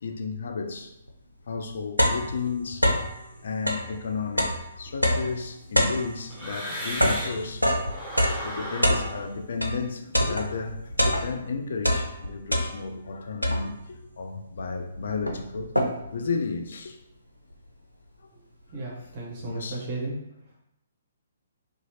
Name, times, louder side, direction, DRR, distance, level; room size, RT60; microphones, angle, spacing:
voice 1, 0.0-0.9 1.5-7.7 8.4-10.9 11.2-15.7 16.1-17.0 18.2-18.3 19.5-19.8, left 4 dB, 55° left, 0.3 m, -33 dB
sound 1, 1.1-1.2 1.5-3.2 3.6-9.8 10.1-11.5 11.8-13.0 13.4-14.0 14.6-14.7 14.9-16.2, equal, 85° right, 0.4 m, -26 dB
sound 2, 4.9-7.5 7.8-10.9, equal, 5° right, 0.8 m, -38 dB
voice 2, 18.7-20.2, right 3 dB, 35° right, 0.7 m, -34 dB
2.7 x 2.3 x 2.8 m
figure-of-eight pair, 125°, 0 cm